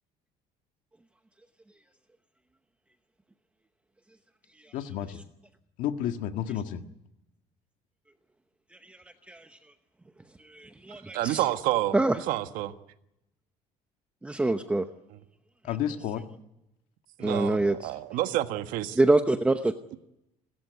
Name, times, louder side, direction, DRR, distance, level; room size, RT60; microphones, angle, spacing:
voice 1, 4.7-5.2 5.8-6.8 15.6-16.2, left 10 dB, 75° left, 1.7 m, -31 dB
voice 2, 10.5-11.4 11.9-12.2 14.2-14.8 17.2-17.9 19.0-19.7, right 2 dB, 10° right, 0.8 m, -25 dB
voice 3, 11.1-11.9 12.3-12.7 17.2-19.0, right 14 dB, 80° right, 1.4 m, -29 dB
29.5 x 13.5 x 9.4 m
cardioid pair, 140°, 14 cm